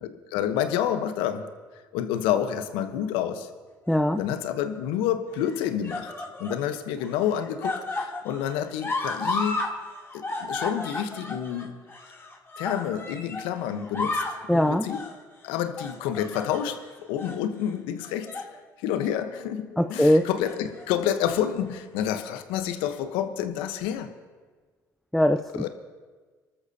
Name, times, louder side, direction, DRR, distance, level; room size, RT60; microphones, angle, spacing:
voice 1, 0.0-1.5 1.9-3.5 4.2-6.1 6.4-9.6 10.1-11.7 12.6-14.2 14.5-15.0 15.4-18.3 18.8-24.1 25.5-25.7, left 10 dB, 75° left, 8 dB, 1.1 m, -29 dB
sound 1, 3.9-4.5 5.4-6.6 7.0-9.7 10.0-13.5 13.8-14.4 14.9-15.2 15.8-16.8 17.2-17.4 18.0-18.5 18.9-19.1 20.2-20.8 21.7-21.8, left 2 dB, 30° left, 2.9 m, -33 dB
voice 2, 3.9-4.2 14.5-14.8 19.8-20.3 25.1-25.7, equal, ahead, 9 dB, 0.6 m, -21 dB
28.0 x 13.0 x 2.9 m, 1.4 s
hypercardioid pair, 55°, 9 cm